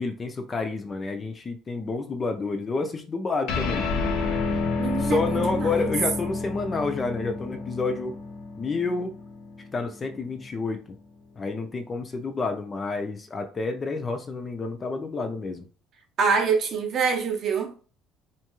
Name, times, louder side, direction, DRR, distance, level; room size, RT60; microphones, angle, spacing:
voice 1, 0.0-3.9 5.0-8.2 8.6-9.1 9.7-11.0 11.4-15.7, left 3 dB, 20° left, 0.3 m, -29 dB
sound 1, 3.5-10.2, left 4 dB, 60° left, 0.6 m, -30 dB
voice 2, 4.8-5.2 5.5-5.7 16.2-17.7, right 5 dB, 40° right, 0.5 m, -24 dB
2.6 x 2.3 x 2.9 m
cardioid pair, 160°, 0 cm